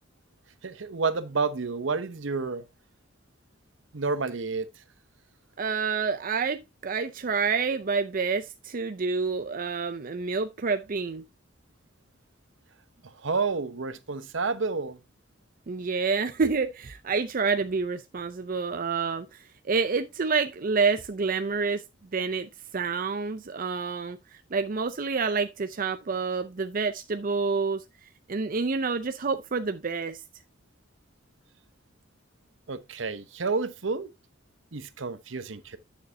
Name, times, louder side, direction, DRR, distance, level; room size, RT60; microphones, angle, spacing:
voice 1, 0.6-2.7 3.9-4.7 13.2-15.0 32.7-34.1 34.7-35.8, right 4 dB, 70° right, 0.8 m, -30 dB
voice 2, 5.6-11.3 15.7-21.8 22.1-27.8 28.3-30.2, right 4 dB, 45° right, 0.6 m, -28 dB
9.2 x 6.7 x 2.7 m
head